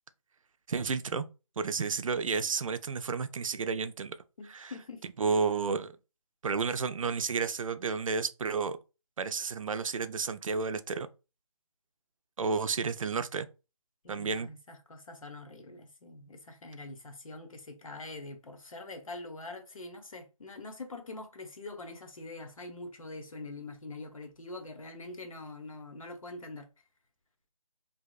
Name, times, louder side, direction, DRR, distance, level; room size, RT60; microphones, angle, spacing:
voice 1, 0.7-1.3 1.6-4.2 4.5-4.7 5.2-5.9 6.4-8.8 9.2-11.1 12.4-13.5 14.1-14.5, right 5 dB, 75° right, 0.4 m, -31 dB
voice 2, 4.4-5.0 14.0-26.7, left 2 dB, 85° left, 0.8 m, -44 dB
2.7 x 2.0 x 2.3 m
figure-of-eight pair, 170°, 17 cm